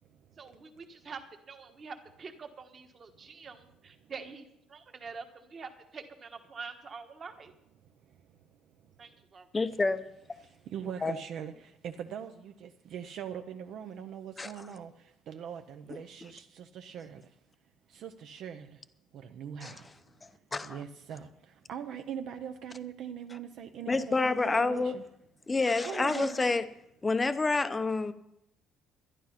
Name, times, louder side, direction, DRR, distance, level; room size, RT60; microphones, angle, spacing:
voice 1, 0.4-1.2 1.5-7.5 9.0-9.5, right 5 dB, 30° right, 1.3 m, -46 dB
voice 2, 9.5-10.0 11.0-11.1 14.4-14.5 19.6-19.8 20.5-20.8 23.9-25.0 25.5-26.6 27.0-28.1, left 3 dB, 15° left, 0.6 m, -28 dB
voice 3, 10.4-17.2 17.9-18.8 19.1-19.9 20.6-25.0 25.8-26.5, right 8 dB, 55° right, 0.6 m, -42 dB
12.0 x 11.5 x 5.8 m
cardioid pair, 175°, 0 cm